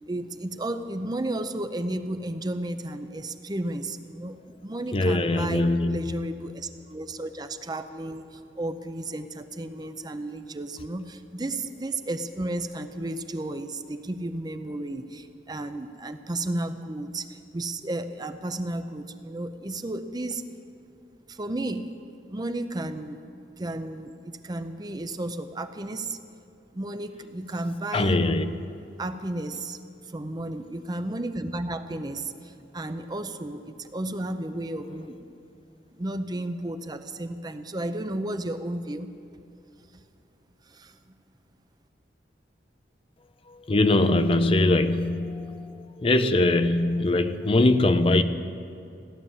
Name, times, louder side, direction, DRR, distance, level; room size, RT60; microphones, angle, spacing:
voice 1, 0.1-20.4 21.3-23.2 23.6-26.2 26.7-28.2 29.0-29.8 30.0-35.2 35.9-39.1 39.9-40.0 40.7-40.9, right 1 dB, 25° right, 0.6 m, -33 dB
voice 2, 4.9-6.3 27.9-28.5 43.5-48.2, left 2 dB, 30° left, 0.5 m, -22 dB
16.0 x 11.0 x 7.2 m
head